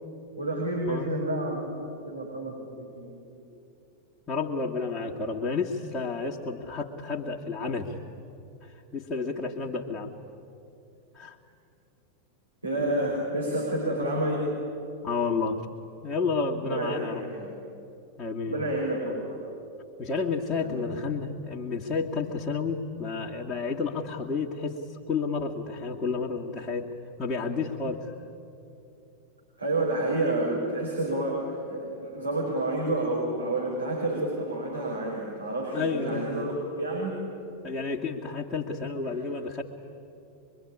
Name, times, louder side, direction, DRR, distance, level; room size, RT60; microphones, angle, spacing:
voice 1, 0.4-3.4 12.6-14.4 16.6-17.5 18.5-19.4 20.6-20.8 29.6-37.2 39.1-39.2, right 1 dB, 85° right, -4 dB, 5.5 m, -29 dB
voice 2, 4.3-8.0 8.6-10.1 11.1-11.4 12.8-13.4 15.0-15.6 16.0-17.2 18.2-18.7 20.0-26.9 27.2-28.1 30.2-30.3 35.7-36.3 37.6-39.6, left 4 dB, 20° left, -6 dB, 2.2 m, -31 dB
24.0 x 23.5 x 9.9 m, 2.7 s
figure-of-eight pair, 90°, 0 cm